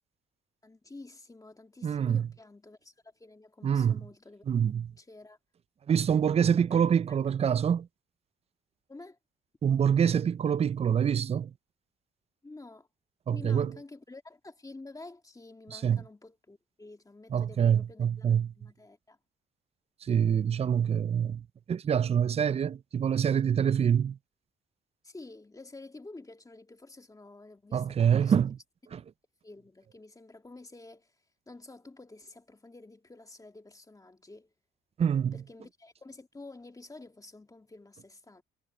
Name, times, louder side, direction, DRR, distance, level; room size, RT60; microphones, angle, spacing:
voice 1, 0.6-4.4 4.9-5.4 6.6-7.2 8.9-9.2 12.4-12.9 13.3-19.2 25.0-28.3 29.4-31.2 31.5-34.5 35.3-38.4, left 2 dB, 15° left, 2.1 m, -50 dB
voice 2, 1.8-2.3 3.6-4.0 4.5-4.9 5.9-7.9 9.6-11.5 13.3-13.7 15.7-16.0 17.3-18.5 20.0-24.2 27.7-28.5 28.9-29.0 35.0-35.3, right 8 dB, 30° right, 0.4 m, -26 dB
cardioid pair, 90°, 20 cm